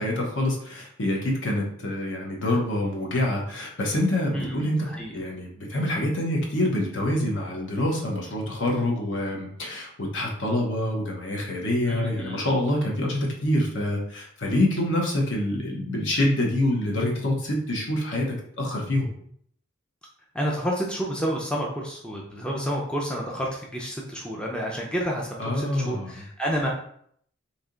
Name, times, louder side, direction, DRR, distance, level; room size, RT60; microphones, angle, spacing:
voice 1, 0.0-19.1 25.4-26.1, left 1 dB, 60° left, -1 dB, 0.9 m, -26 dB
voice 2, 4.3-5.1 11.9-12.4 20.3-26.7, equal, 5° left, -2 dB, 0.5 m, -30 dB
3.3 x 2.8 x 3.8 m, 0.65 s
head